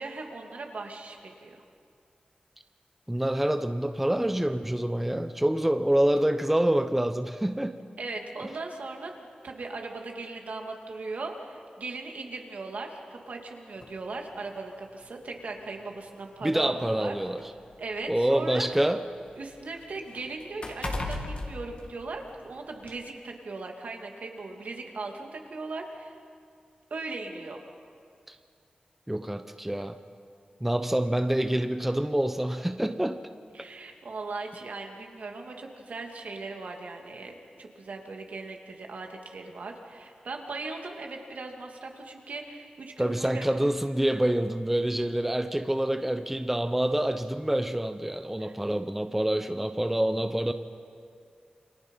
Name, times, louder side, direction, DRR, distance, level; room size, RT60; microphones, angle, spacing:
voice 1, 0.0-1.6 8.0-9.1 9.4-17.2 17.8-18.7 19.4-26.1 26.9-27.6 33.5-43.5 48.4-48.5, right 3 dB, 70° right, 2 dB, 2.7 m, -38 dB
voice 2, 3.1-7.8 16.4-17.4 18.1-19.0 28.3-28.4 29.1-30.0 30.6-33.2 43.0-50.5, right 1 dB, 10° right, 9 dB, 0.8 m, -26 dB
sound 1, 13.8-14.0 15.0-15.1 15.6-15.7 16.7-18.6 19.0-22.4 22.8-23.0, left 2 dB, 50° left, 2.5 m, -38 dB
28.5 x 24.0 x 5.6 m, 2.3 s
wide cardioid pair, 120°, 3 cm